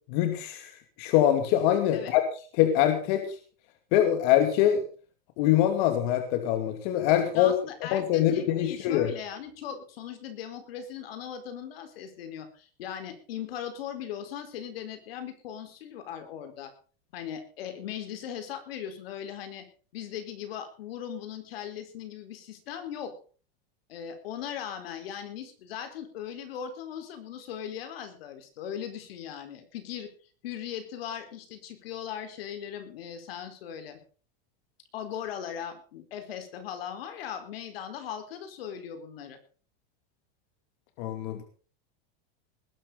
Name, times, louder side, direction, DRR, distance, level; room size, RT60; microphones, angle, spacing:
voice 1, 0.1-0.7 1.0-2.2 2.6-3.3 3.9-4.8 5.4-7.6 7.9-9.1 41.0-41.4, left 11 dB, 55° left, 6 dB, 2.6 m, -24 dB
voice 2, 7.3-16.7 17.1-19.7 19.9-23.1 23.9-30.1 30.4-34.0 34.9-39.4, left 9 dB, 85° left, 8 dB, 4.5 m, -39 dB
20.0 x 12.0 x 4.0 m, 0.39 s
supercardioid pair, 150°, 29 cm